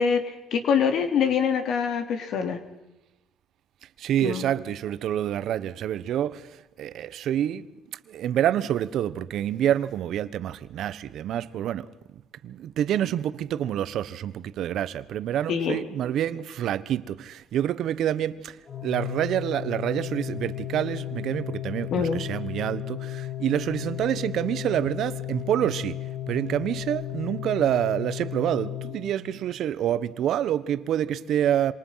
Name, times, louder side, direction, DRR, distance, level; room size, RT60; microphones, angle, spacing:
voice 1, 0.0-2.6 4.2-4.5 15.5-15.8 21.9-22.2, left 6 dB, 65° left, 3.1 m, -24 dB
voice 2, 4.0-6.5 6.8-7.7 8.1-11.9 12.4-18.6 18.8-26.0 26.3-31.7, right 11 dB, 65° right, 1.2 m, -27 dB
Organ, 18.7-29.6, left 13 dB, 35° left, 5.3 m, -34 dB
27.5 x 27.0 x 5.9 m
cardioid pair, 110°, 0 cm